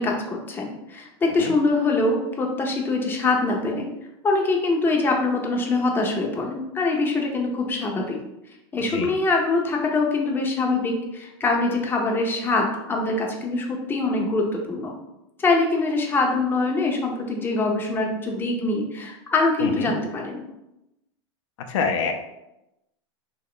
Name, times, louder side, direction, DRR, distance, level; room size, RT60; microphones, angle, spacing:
voice 1, 0.0-3.9 4.2-8.2 8.7-14.9 15.4-20.4, left 3 dB, 15° left, 0 dB, 0.5 m, -24 dB
voice 2, 19.6-19.9 21.7-22.1, left 5 dB, 75° left, 5 dB, 0.4 m, -25 dB
2.8 x 2.2 x 3.7 m, 0.90 s
hypercardioid pair, 120°, 16 cm